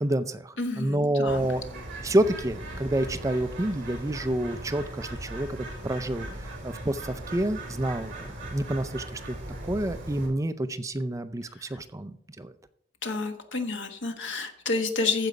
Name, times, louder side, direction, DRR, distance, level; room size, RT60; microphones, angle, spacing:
voice 1, 0.0-1.6 2.0-9.4 9.6-12.5, right 1 dB, 15° right, 11 dB, 0.4 m, -28 dB
voice 2, 0.6-1.5 11.5-11.8 13.0-15.3, left 3 dB, 80° left, 6 dB, 1.3 m, -30 dB
Bird, 1.3-10.3, right 1 dB, 45° right, 3.4 m, -39 dB
14.5 x 4.9 x 5.2 m, 0.70 s
head